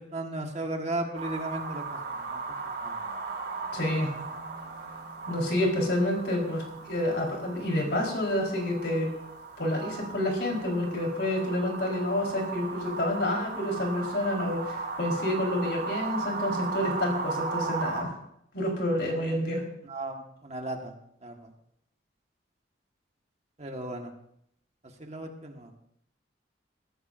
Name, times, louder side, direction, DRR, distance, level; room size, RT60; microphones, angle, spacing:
voice 1, 0.0-2.4 2.8-3.0 19.2-19.4 19.9-20.9 21.2-21.5 23.6-24.1 25.0-25.7, right 2 dB, 35° right, 2 dB, 1.5 m, -36 dB
sound 1, 1.1-18.0, right 4 dB, 65° right, 4.3 m, -37 dB
voice 2, 3.7-4.1 5.3-9.1 9.6-18.1 18.5-19.6, left 1 dB, 60° left, 0 dB, 4.1 m, -28 dB
20.5 x 14.5 x 2.6 m, 0.72 s
head